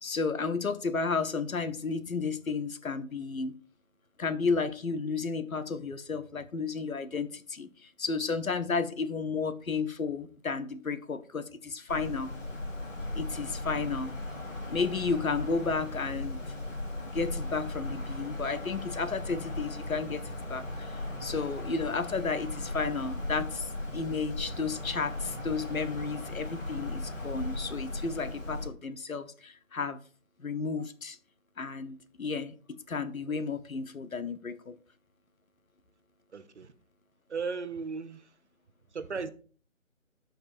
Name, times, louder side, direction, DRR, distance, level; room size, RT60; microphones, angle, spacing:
voice 1, 0.0-3.5 4.2-12.3 13.1-14.1 14.7-16.4 17.1-30.0 30.4-31.2 31.6-34.7, left 4 dB, 90° left, 0.9 m, -33 dB
Wind, 11.9-28.7, left 1 dB, 65° left, 3.3 m, -37 dB
voice 2, 36.3-36.7 37.3-38.3 38.9-39.3, right 5 dB, 55° right, 0.8 m, -36 dB
11.5 x 5.3 x 2.6 m
figure-of-eight pair, 160°, 40 cm